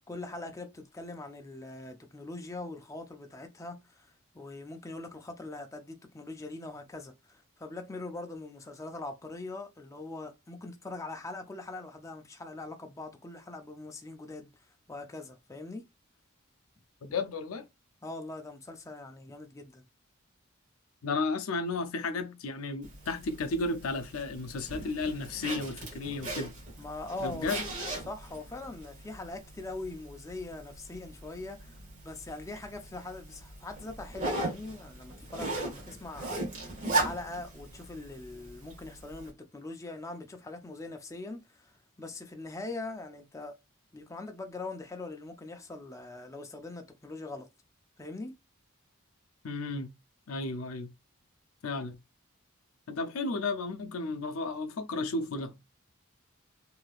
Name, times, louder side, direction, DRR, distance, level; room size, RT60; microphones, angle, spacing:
voice 1, 0.1-14.5 14.9-15.9 18.0-19.9 26.8-27.5 28.1-31.8 32.0-43.5 43.9-47.5 48.0-48.4, left 2 dB, 15° left, 0.4 m, -42 dB
voice 2, 17.0-17.6 21.0-26.5 27.2-27.6 49.4-49.9 50.3-50.9 51.6-52.0 52.9-55.6, left 3 dB, 85° left, 0.5 m, -33 dB
Zipper (clothing), 22.8-39.3, right 2 dB, 35° right, 1.3 m, -38 dB
3.2 x 2.7 x 2.3 m
head